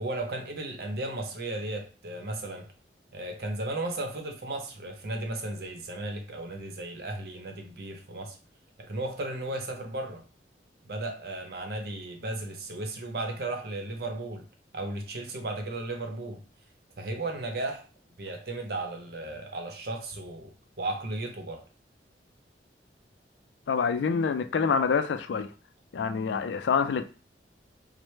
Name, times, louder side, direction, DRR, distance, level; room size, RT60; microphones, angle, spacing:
voice 1, 0.0-2.7 3.1-8.4 8.8-10.2 10.8-14.4 14.7-16.4 17.0-17.9 18.2-20.5 20.8-21.6, right 2 dB, 60° right, 0.7 m, -35 dB
voice 2, 23.7-25.5 25.9-27.1, left 5 dB, 85° left, 0.4 m, -26 dB
4.6 x 2.1 x 3.2 m
head